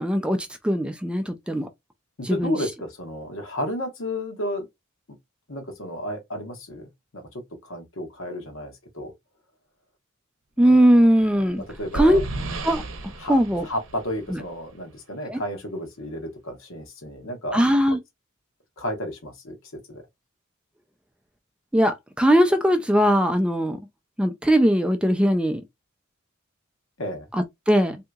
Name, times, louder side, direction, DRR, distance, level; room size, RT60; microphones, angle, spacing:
voice 1, 0.0-1.7 2.2-2.6 10.6-11.6 11.9-12.2 12.6-12.8 13.3-13.6 14.3-14.4 15.3-15.4 17.5-18.0 21.7-23.8 24.2-25.6 27.3-28.0, equal, 5° right, 0.3 m, -20 dB
voice 2, 2.2-4.7 5.5-9.1 10.6-11.1 11.3-12.2 13.2-17.6 18.8-20.0 27.0-27.3, left 1 dB, 70° left, 1.0 m, -33 dB
sound 1, 11.1-14.8, right 2 dB, 65° right, 0.7 m, -34 dB
3.6 x 2.7 x 2.2 m
head